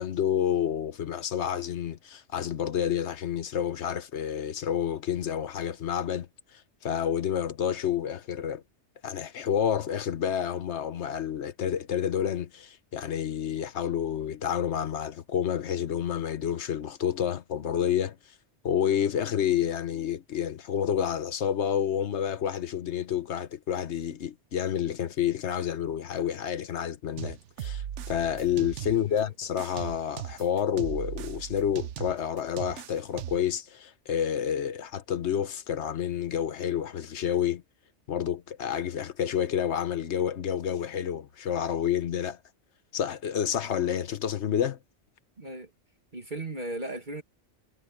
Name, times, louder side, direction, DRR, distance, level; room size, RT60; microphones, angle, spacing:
voice 1, 0.0-6.3 6.8-8.6 9.0-18.2 18.6-37.6 38.1-42.4 42.9-44.8, left 9 dB, 75° left, 1.2 m, -29 dB
sound 1, 27.2-29.2 29.6-33.6, right 10 dB, 85° right, 1.1 m, -38 dB
voice 2, 28.9-29.3 45.4-45.7 46.1-47.2, right 2 dB, 40° right, 2.2 m, -37 dB
omnidirectional pair, 1.2 m